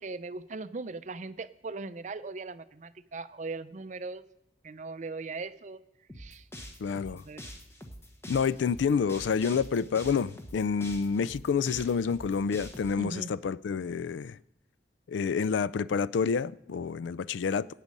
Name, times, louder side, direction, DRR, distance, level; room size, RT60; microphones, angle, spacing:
voice 1, 0.0-4.2 4.6-5.8 6.2-6.4 7.1-7.4 13.0-13.3, right 3 dB, 40° right, 0.5 m, -39 dB
sound 1, 6.1-12.9, equal, 15° left, 1.3 m, -45 dB
voice 2, 6.8-7.2 8.3-14.4 15.1-17.7, left 6 dB, 90° left, 0.4 m, -28 dB
16.0 x 8.4 x 5.3 m
head